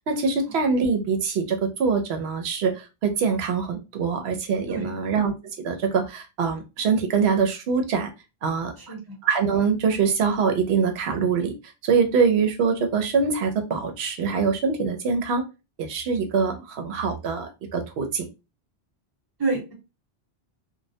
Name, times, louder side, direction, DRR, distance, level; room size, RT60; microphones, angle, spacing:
voice 1, 0.1-5.3 5.6-8.1 8.4-8.7 9.2-11.5 11.8-15.4 15.8-18.3, right 5 dB, 85° right, 6 dB, 0.8 m, -24 dB
voice 2, 8.8-9.1 19.4-19.7, right 3 dB, 25° right, -2 dB, 0.7 m, -28 dB
2.2 x 2.1 x 2.6 m, 0.28 s
omnidirectional pair, 1.1 m